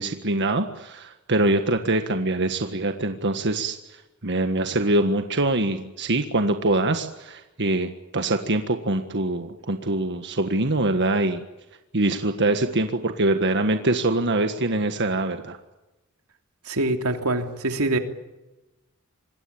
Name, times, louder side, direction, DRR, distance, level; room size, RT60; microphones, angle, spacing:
voice 1, 0.0-3.8 4.2-11.4 11.9-15.6, right 2 dB, 55° right, 7 dB, 1.6 m, -24 dB
voice 2, 16.7-18.0, right 2 dB, 85° right, 5 dB, 3.1 m, -24 dB
26.0 x 21.0 x 8.8 m, 1.0 s
head